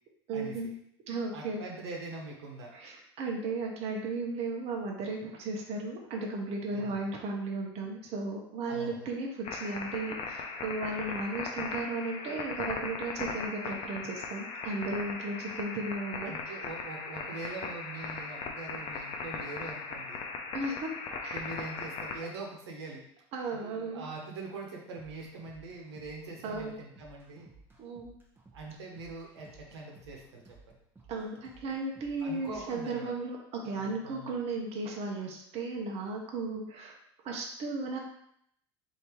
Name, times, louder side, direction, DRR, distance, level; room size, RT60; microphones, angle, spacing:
voice 1, 0.3-0.7 1.1-1.6 2.7-16.7 20.5-20.9 21.2-21.4 23.3-24.0 26.4-26.8 27.8-28.1 31.1-37.0 37.2-38.0, right 3 dB, 50° right, 0 dB, 0.9 m, -35 dB
voice 2, 1.3-2.7 6.7-7.1 8.7-9.1 16.2-20.3 21.3-23.0 23.5-27.5 28.5-30.4 32.2-33.1 33.6-34.3, right 3 dB, 90° right, -1 dB, 1.0 m, -43 dB
sound 1, 9.4-22.2, left 4 dB, 45° left, 0.7 m, -38 dB
sound 2, 25.0-32.8, right 3 dB, 15° right, 1.0 m, -58 dB
3.3 x 2.8 x 4.4 m, 0.73 s
hypercardioid pair, 90°, 14 cm